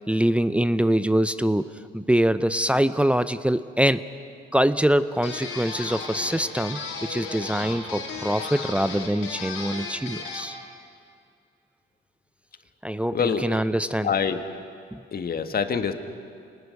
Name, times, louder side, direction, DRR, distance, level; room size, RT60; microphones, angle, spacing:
voice 1, 0.1-4.0 4.5-10.6 12.8-14.1 14.9-15.0, right 1 dB, 5° right, 13 dB, 0.6 m, -24 dB
sound 1, 5.2-10.6, left 4 dB, 85° left, 4.4 m, -35 dB
voice 2, 13.1-13.6 14.0-14.4 15.1-15.9, left 6 dB, 50° left, 8 dB, 1.7 m, -25 dB
28.5 x 19.5 x 6.6 m, 2.4 s
cardioid pair, 90°, 20 cm